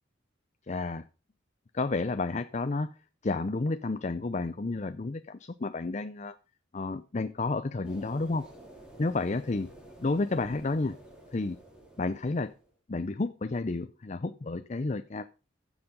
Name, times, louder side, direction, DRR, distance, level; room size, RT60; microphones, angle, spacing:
voice 1, 0.7-1.0 1.7-2.9 3.2-6.4 6.7-8.5 9.0-9.7 10.0-11.0 11.3-11.6 12.0-12.5 12.9-15.3, left 3 dB, 40° left, 0.5 m, -31 dB
sound 1, 7.8-12.7, right 1 dB, 5° right, 4.1 m, -51 dB
15.0 x 7.2 x 5.1 m
head